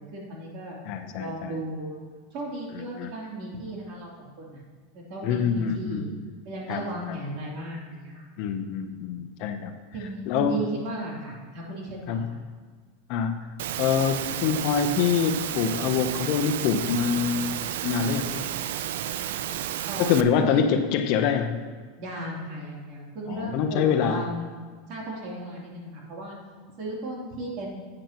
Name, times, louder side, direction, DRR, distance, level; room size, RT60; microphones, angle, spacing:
voice 1, 0.0-0.8 1.2-2.0 2.3-4.6 4.9-6.0 6.4-8.2 8.9-9.1 9.9-12.4 19.9-20.7 22.0-24.5 24.9-26.3 26.8-27.7, right 1 dB, 50° right, -3 dB, 3.0 m, -35 dB
voice 2, 0.9-1.6 2.9-3.1 5.2-6.1 6.7-7.2 8.4-9.7 10.3-10.6 12.1-12.3 13.1-13.4 13.8-18.4 20.0-21.6 23.3-24.2, left 7 dB, 50° left, 6 dB, 0.7 m, -25 dB
Engine / Mechanisms, 13.6-20.2, right 11 dB, 75° right, 0.4 m, -32 dB
11.5 x 8.8 x 2.9 m, 1.5 s
supercardioid pair, 140°, 0 cm